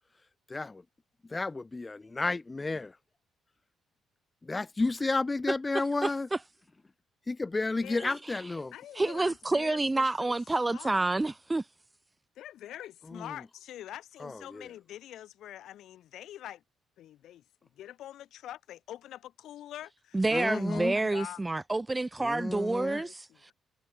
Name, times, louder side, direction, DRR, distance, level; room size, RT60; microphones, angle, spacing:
voice 1, 1.3-3.0 4.4-6.3 7.3-8.7 13.1-13.3 14.2-14.7 20.3-21.0 22.2-23.0, left 3 dB, 15° left, 1.0 m, -32 dB
voice 2, 6.0-6.4 8.0-8.1 8.9-11.6 20.1-23.3, right 2 dB, 10° right, 0.6 m, -28 dB
voice 3, 7.8-8.1 8.7-10.3 10.6-11.0 12.4-16.6 17.0-17.4 17.8-21.4 22.8-23.4, left 12 dB, 70° left, 7.9 m, -45 dB
cardioid pair, 155°, 0 cm